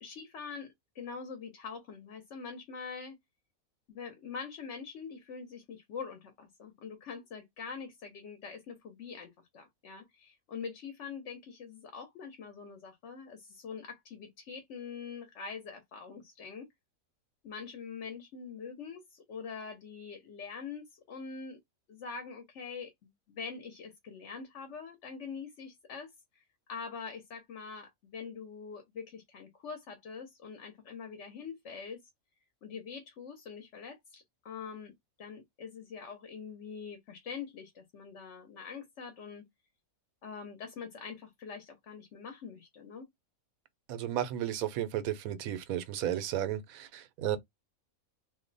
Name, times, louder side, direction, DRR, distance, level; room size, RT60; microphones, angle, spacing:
voice 1, 0.0-0.7 0.9-3.2 3.9-16.7 17.4-21.6 21.9-26.4 26.7-32.0 32.6-34.9 35.2-39.4 40.2-43.0, left 5 dB, 60° left, 1.0 m, -44 dB
voice 2, 43.9-47.4, right 11 dB, 90° right, 1.1 m, -33 dB
2.7 x 2.1 x 3.8 m
omnidirectional pair, 1.4 m